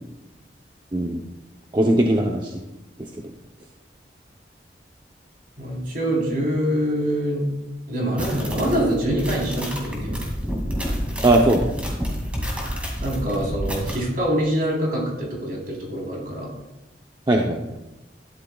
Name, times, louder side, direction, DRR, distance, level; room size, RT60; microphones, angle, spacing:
voice 1, 0.9-1.2 1.7-2.6 11.2-11.7 17.3-17.6, right 1 dB, 25° right, 0 dB, 0.7 m, -19 dB
voice 2, 5.6-7.5 7.9-10.3 13.0-16.5, equal, 55° right, -2 dB, 3.7 m, -25 dB
sound 1, 8.2-14.0, equal, 5° right, 2.3 m, -29 dB
12.5 x 11.5 x 2.3 m, 1.0 s
head